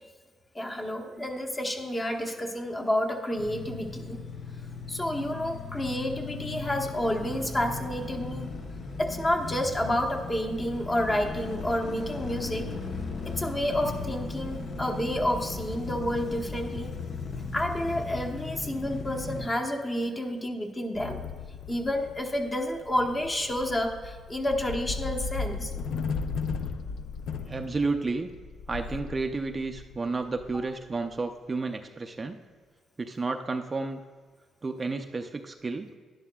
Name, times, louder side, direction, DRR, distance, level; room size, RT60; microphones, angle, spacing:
voice 1, 0.5-4.2 4.9-8.5 9.0-12.7 13.3-16.9 17.5-21.2 21.7-25.7, left 1 dB, 20° left, 2 dB, 1.0 m, -30 dB
sound 1, 3.4-19.5, left 4 dB, 55° left, 0.9 m, -37 dB
sound 2, 20.9-31.1, left 5 dB, 75° left, 0.5 m, -36 dB
voice 2, 27.5-28.3 28.7-32.4 33.0-34.0 34.6-36.0, right 3 dB, 30° right, 6 dB, 0.5 m, -31 dB
11.0 x 11.0 x 2.3 m, 1.5 s
cardioid pair, 90°, 0 cm